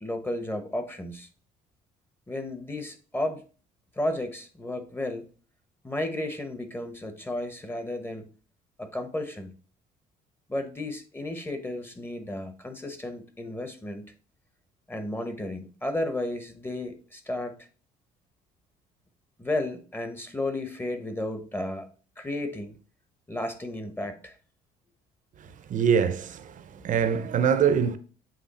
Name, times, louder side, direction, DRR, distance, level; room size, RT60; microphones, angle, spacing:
voice 1, 0.0-1.3 2.3-3.4 4.0-5.3 5.8-8.3 8.8-9.5 10.5-14.1 14.9-17.6 19.4-21.9 22.2-22.8 23.3-24.3, left 1 dB, 10° left, 0.9 m, -33 dB
voice 2, 25.7-28.0, right 7 dB, 50° right, 0.8 m, -24 dB
7.6 x 3.3 x 4.1 m
cardioid pair, 110°, 17 cm